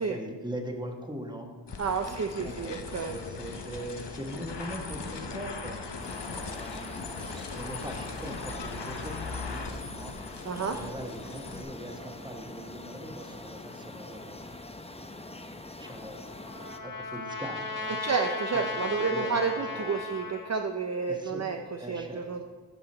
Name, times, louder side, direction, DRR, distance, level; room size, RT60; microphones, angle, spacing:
voice 1, 0.0-1.5 2.0-5.8 6.3-6.9 7.5-10.1 10.6-14.4 14.8-15.0 15.8-18.0 18.5-20.0 21.1-21.4 21.8-22.2, right 1 dB, 10° right, 2 dB, 1.2 m, -41 dB
sound 1, 1.7-11.6, left 4 dB, 75° left, 0.8 m, -39 dB
voice 2, 1.8-3.2 10.5-10.8 18.0-22.4, right 5 dB, 40° right, 4 dB, 0.5 m, -30 dB
sound 2, 6.0-16.8, left 2 dB, 15° left, 0.6 m, -44 dB
Trumpet, 15.8-20.5, left 3 dB, 50° left, 1.2 m, -36 dB
13.0 x 6.0 x 4.3 m, 1.5 s
wide cardioid pair, 60°, 42 cm